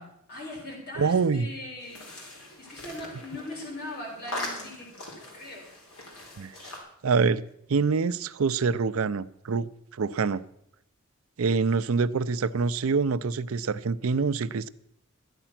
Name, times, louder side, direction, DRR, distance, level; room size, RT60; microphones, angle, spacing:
voice 1, 0.0-2.1 2.6-5.7, left 1 dB, 45° left, -1 dB, 4.1 m, -40 dB
voice 2, 1.0-1.5 6.4-6.5 7.0-7.4 7.7-9.7 10.0-10.4 11.4-14.7, right 4 dB, 80° right, 14 dB, 0.5 m, -25 dB
sound 1, 1.8-6.8, left 1 dB, 85° left, 3.9 m, -41 dB
13.0 x 10.0 x 5.9 m, 0.74 s
head